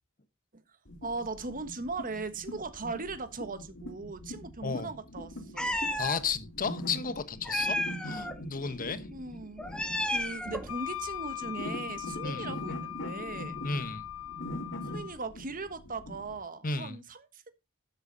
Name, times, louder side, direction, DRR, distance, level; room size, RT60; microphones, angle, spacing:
sound 1, 0.8-16.4, equal, 60° left, 2.2 m, -43 dB
voice 1, 1.0-5.8 8.6-8.7 9.1-13.6 14.8-17.5, right 3 dB, 40° right, 1.4 m, -39 dB
Meow, 5.6-6.2 7.4-8.4 9.6-10.7, left 1 dB, 5° left, 1.2 m, -32 dB
voice 2, 6.0-9.1 12.2-12.5 13.6-14.0 16.6-17.0, left 5 dB, 40° left, 1.2 m, -33 dB
Wind instrument woodwind instrument, 10.7-15.2, left 12 dB, 80° left, 1.6 m, -40 dB
12.5 x 8.0 x 4.0 m
head